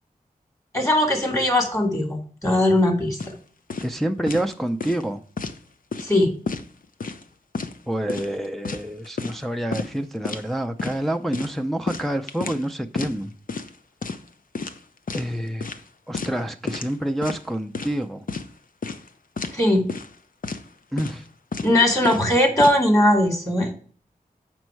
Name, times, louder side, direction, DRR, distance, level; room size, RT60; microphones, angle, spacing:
voice 1, 0.7-3.2 6.0-6.3 19.5-19.8 21.6-23.7, left 1 dB, 20° left, 2.5 m, -19 dB
sound 1, 3.2-3.4 3.7-3.9 4.3-4.5 4.8-5.6 5.9-6.1 6.5-7.2 7.5-7.8 8.1-9.4 9.7-9.9 10.2-10.5 10.8-11.0 11.3-12.6 12.9-13.1 13.5-13.7 14.0-14.3 14.5-15.3 15.6-15.8 16.1-16.4 16.7-16.9 17.2-17.9 18.3-18.5 18.8-19.1 19.4-19.6 19.9-20.1 20.4-20.6 21.0-21.3 21.5-21.7 22.0-22.8, left 4 dB, 65° left, 0.7 m, -31 dB
voice 2, 3.8-5.2 7.9-13.3 15.1-15.7 16.1-18.3 20.9-21.2, right 1 dB, ahead, 0.5 m, -27 dB
7.3 x 5.3 x 4.6 m
wide cardioid pair, 75°, 15 cm